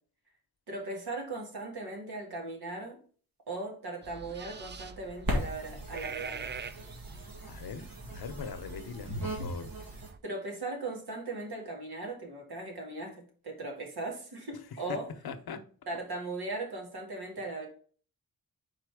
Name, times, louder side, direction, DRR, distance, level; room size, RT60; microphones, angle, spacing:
voice 1, 0.7-3.0 3.5-6.5 9.2-9.5 10.2-15.1 15.9-17.7, right 2 dB, 85° right, 2.1 m, -38 dB
sound 1, 4.0-10.2, right 5 dB, 30° right, 0.4 m, -44 dB
sound 2, 5.2-10.1, equal, 65° right, 2.1 m, -38 dB
voice 2, 7.5-9.7 14.9-15.0 15.2-15.6, left 6 dB, 80° left, 0.8 m, -41 dB
5.1 x 4.1 x 4.8 m
wide cardioid pair, 115°, 37 cm